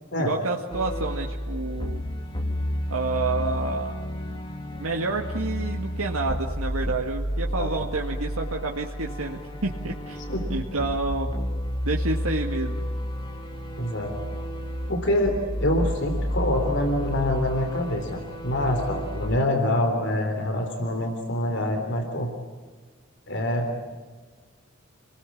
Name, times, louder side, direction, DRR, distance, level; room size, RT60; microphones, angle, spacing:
voice 1, 0.2-2.0 2.9-4.0 4.3-4.4 4.7-10.2 10.5-11.3 11.8-12.8, right 3 dB, 85° right, 1 dB, 1.9 m, -29 dB
sound 1, 0.7-19.4, equal, 25° left, 2.6 m, -31 dB
voice 2, 13.8-14.1 14.9-22.3 23.3-23.7, left 1 dB, 55° left, 5 dB, 3.5 m, -26 dB
28.5 x 20.5 x 8.6 m, 1.4 s
head